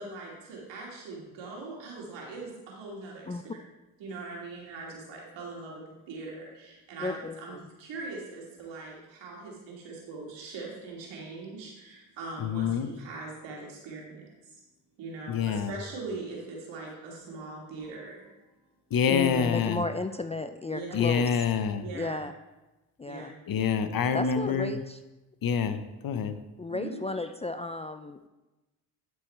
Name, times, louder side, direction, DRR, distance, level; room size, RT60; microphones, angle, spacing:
voice 1, 0.0-3.4 4.0-14.6 15.0-18.3 20.7-21.2 21.8-22.2 23.0-23.3 26.7-27.0, right 3 dB, 80° right, -2 dB, 2.6 m, -41 dB
voice 2, 7.0-7.6 19.1-21.4 21.9-22.3 23.0-23.3 24.1-25.0 25.6-25.8 26.6-28.3, left 3 dB, 15° left, 9 dB, 0.3 m, -34 dB
voice 3, 12.4-12.9 15.3-15.7 18.9-19.8 20.9-21.8 23.5-24.7 25.4-26.3, left 7 dB, 50° left, 10 dB, 0.9 m, -26 dB
11.5 x 4.8 x 4.5 m, 1.1 s
supercardioid pair, 60°, 44 cm